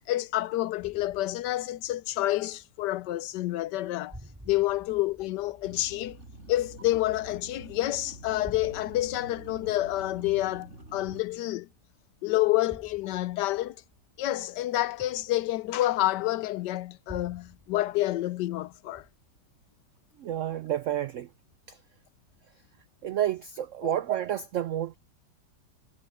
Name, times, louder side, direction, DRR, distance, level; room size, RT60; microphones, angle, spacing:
voice 1, 0.1-4.2 4.4-6.2 6.5-11.7 12.2-13.8 14.2-19.1 23.8-23.9, left 16 dB, 80° left, 1.2 m, -28 dB
sound 1, 0.8-3.0 3.3-3.8 4.1-7.8 8.2-11.8 12.7-16.2 17.1-18.6 18.9-19.5, right 1 dB, 10° right, 2.4 m, -52 dB
sound 2, 5.6-11.2, right 2 dB, 40° right, 5.1 m, -47 dB
voice 2, 20.2-21.3 21.7-21.8 23.0-25.0, right 11 dB, 80° right, 0.6 m, -30 dB
omnidirectional pair, 1.9 m